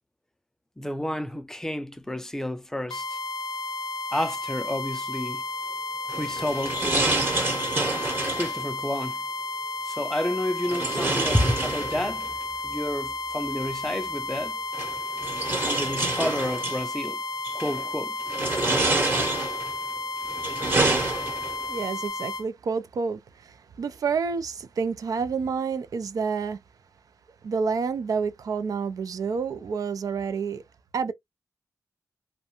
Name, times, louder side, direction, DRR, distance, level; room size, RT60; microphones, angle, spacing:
voice 1, 0.8-3.2 4.1-5.4 6.1-7.3 8.4-9.2 9.9-12.3 12.6-14.6 15.6-17.2 17.5-18.2, left 1 dB, 10° left, 0.4 m, -30 dB
sound 1, 2.9-22.4, left 2 dB, 85° left, 0.5 m, -33 dB
sound 2, 6.1-8.6 10.6-12.3 13.6-13.7 14.7-16.8 17.4-17.8 18.3-19.7 20.2-21.7, right 2 dB, 35° right, 1.0 m, -27 dB
voice 2, 21.7-26.6 27.4-30.6 30.9-31.1, right 5 dB, 75° right, 0.4 m, -29 dB
2.5 x 2.2 x 2.8 m
wide cardioid pair, 100°, 6 cm